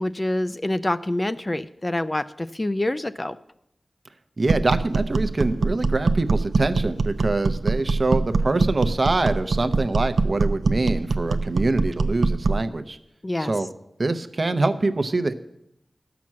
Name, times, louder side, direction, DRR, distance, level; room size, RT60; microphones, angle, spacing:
voice 1, 0.0-3.4 13.2-13.5, left 1 dB, 25° left, 12 dB, 0.4 m, -26 dB
voice 2, 4.4-13.0 13.4-13.7 14.0-15.3, right 2 dB, 50° right, 10 dB, 0.7 m, -24 dB
sound 1, 4.5-12.7, right 3 dB, 90° right, 0.5 m, -23 dB
12.0 x 6.0 x 7.4 m, 0.81 s
wide cardioid pair, 70°, 0 cm